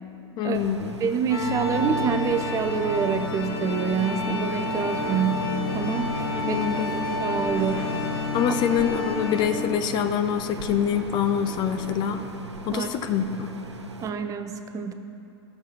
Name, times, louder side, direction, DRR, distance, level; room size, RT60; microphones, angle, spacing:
voice 1, 0.4-0.9 6.3-6.9 8.3-12.2 12.7-13.5, left 8 dB, 30° left, 8 dB, 0.6 m, -25 dB
sound 1, 0.5-14.1, right 3 dB, 75° right, 0.9 m, -40 dB
voice 2, 1.0-6.1 6.5-7.8 12.7-12.9 14.0-14.9, right 6 dB, 25° right, 8 dB, 0.5 m, -27 dB
sound 2, 1.3-9.5, left 2 dB, 55° left, 1.6 m, -29 dB
sound 3, 4.5-12.3, right 3 dB, 40° right, 1.6 m, -40 dB
16.5 x 6.7 x 4.3 m, 2.6 s
figure-of-eight pair, 90°, 15 cm